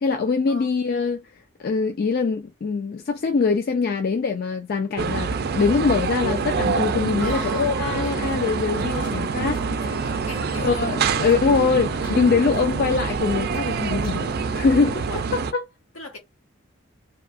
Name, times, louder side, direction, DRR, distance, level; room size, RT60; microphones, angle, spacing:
voice 1, 0.0-1.2 1.6-9.9 10.6-15.0 15.3-15.6, left 4 dB, 45° left, 0.3 m, -23 dB
sound 1, 5.0-15.5, right 5 dB, 50° right, 0.3 m, -26 dB
Keyboard (musical), 7.0-15.0, right 3 dB, 20° left, 0.9 m, -40 dB
voice 2, 7.2-7.8 8.7-11.2 11.8-12.1 15.0-15.3 15.9-16.2, equal, 80° left, 1.2 m, -38 dB
2.6 x 2.4 x 2.4 m
head